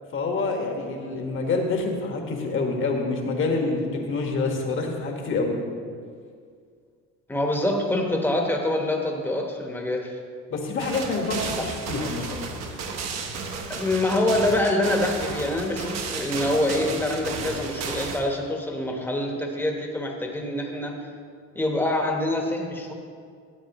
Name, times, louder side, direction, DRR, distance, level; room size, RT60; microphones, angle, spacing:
voice 1, 0.1-5.6 10.5-12.4, left 3 dB, 45° left, 2 dB, 1.5 m, -27 dB
voice 2, 7.3-10.2 11.6-11.7 13.7-21.0 21.5-22.9, left 1 dB, 5° left, 1 dB, 1.2 m, -25 dB
sound 1, 10.8-18.2, right 4 dB, 60° right, 1.2 m, -33 dB
13.0 x 8.6 x 3.0 m, 2.1 s
cardioid pair, 125°, 30 cm